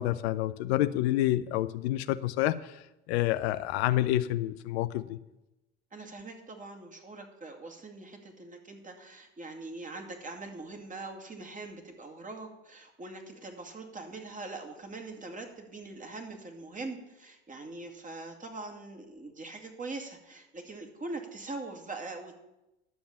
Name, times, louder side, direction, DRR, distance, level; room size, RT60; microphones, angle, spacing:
voice 1, 0.0-2.7 3.1-5.2, left 14 dB, 65° left, 13 dB, 0.6 m, -28 dB
voice 2, 5.9-22.4, right 3 dB, 20° right, 3 dB, 2.2 m, -42 dB
11.5 x 7.2 x 7.0 m, 0.94 s
hypercardioid pair, 70°, 35 cm